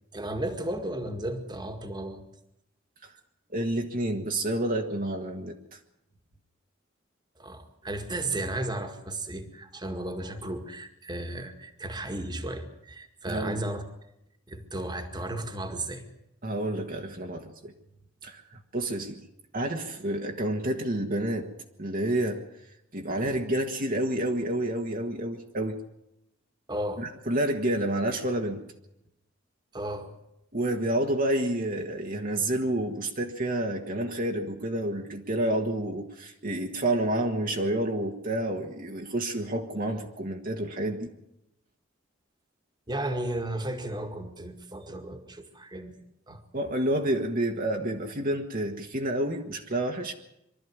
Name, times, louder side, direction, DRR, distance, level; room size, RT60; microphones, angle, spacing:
voice 1, 0.1-2.2 7.4-13.8 14.5-16.0 23.3-23.4 26.7-27.1 29.7-30.1 42.9-46.0 46.3-46.4, right 1 dB, 20° right, 7 dB, 1.9 m, -34 dB
voice 2, 3.5-5.8 13.3-13.6 16.4-17.7 18.2-19.2 19.5-21.5 21.8-22.4 22.9-25.8 27.0-28.6 30.5-41.1 46.5-50.1, right 1 dB, 45° right, 2 dB, 1.7 m, -29 dB
23.5 x 13.0 x 9.7 m, 0.82 s
head